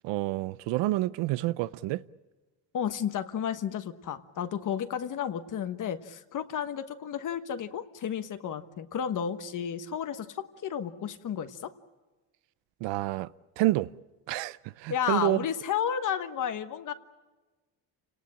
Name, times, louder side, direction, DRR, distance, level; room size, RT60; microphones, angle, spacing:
voice 1, 0.0-2.0 12.8-13.3 13.6-13.9 14.3-15.4, right 17 dB, 90° right, 0.7 m, -28 dB
voice 2, 2.7-11.7 14.9-16.9, left 8 dB, 45° left, 1.3 m, -32 dB
29.0 x 18.5 x 8.7 m
cardioid pair, 150°, 43 cm